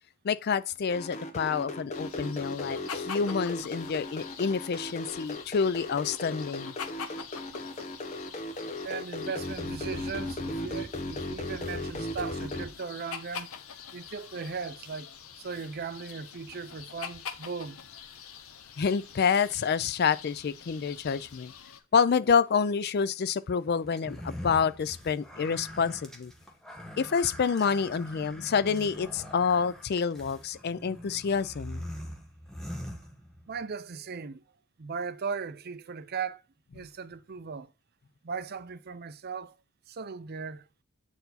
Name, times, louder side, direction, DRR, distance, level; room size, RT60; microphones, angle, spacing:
voice 1, 0.2-6.7 18.8-21.5 21.9-26.3 27.0-31.8, left 6 dB, 50° left, 0.4 m, -28 dB
sound 1, 0.9-12.7, left 1 dB, 35° left, 1.0 m, -36 dB
sound 2, 1.9-21.8, left 7 dB, 80° left, 0.8 m, -45 dB
voice 2, 8.8-13.5 13.9-17.8 33.5-34.4 34.8-36.4 36.7-37.7 38.2-39.6 39.9-40.7, right 5 dB, 45° right, 0.5 m, -38 dB
sound 3, 24.0-33.6, equal, ahead, 1.2 m, -43 dB
8.0 x 4.5 x 4.1 m
head